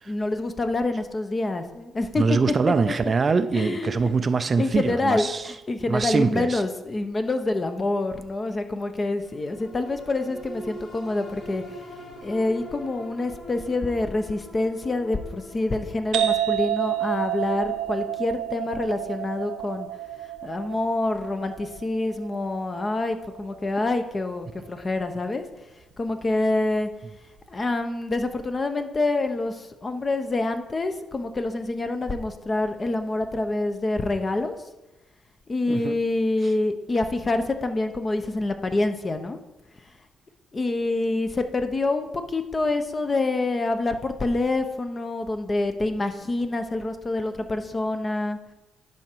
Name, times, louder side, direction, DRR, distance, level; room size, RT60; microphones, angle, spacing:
voice 1, 0.1-2.4 3.5-3.9 4.6-11.8 12.2-19.9 20.4-25.4 26.0-26.9 27.5-34.6 35.5-39.4 40.5-48.4, left 2 dB, 30° left, 8 dB, 0.8 m, -26 dB
voice 2, 2.2-5.5 5.9-6.6 35.7-36.0 36.4-36.5, right 4 dB, 35° right, 11 dB, 0.4 m, -23 dB
sound 1, 9.2-23.9 24.3-24.4, equal, 65° left, 3.3 m, -45 dB
sound 2, 16.1-23.6, right 12 dB, 75° right, 0.7 m, -30 dB
10.5 x 5.0 x 4.5 m, 1.0 s
cardioid pair, 90°, 0 cm